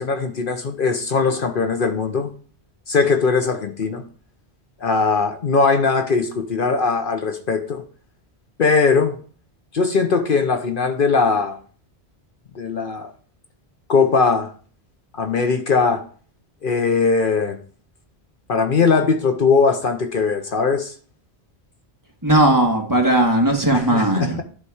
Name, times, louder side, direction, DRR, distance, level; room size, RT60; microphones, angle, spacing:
voice 1, 0.0-2.3 2.9-4.0 4.8-7.8 8.6-9.1 9.7-11.6 12.5-13.1 13.9-14.5 15.2-16.0 16.6-17.6 18.5-20.9 23.7-24.4, left 4 dB, 60° left, 0.9 m, -20 dB
voice 2, 22.2-24.4, right 1 dB, 20° right, 1.5 m, -17 dB
11.0 x 4.1 x 4.8 m
omnidirectional pair, 1.1 m